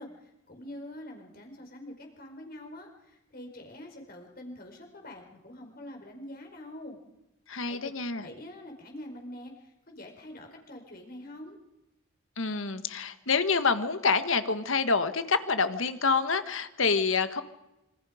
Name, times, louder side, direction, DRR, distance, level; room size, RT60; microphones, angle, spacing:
voice 1, 0.0-7.0 7.6-7.9 8.2-11.6, left 1 dB, 45° left, 2 dB, 4.8 m, -45 dB
voice 2, 7.5-8.3 12.4-17.4, left 4 dB, 70° left, 10 dB, 1.6 m, -27 dB
26.5 x 25.5 x 5.2 m, 0.95 s
head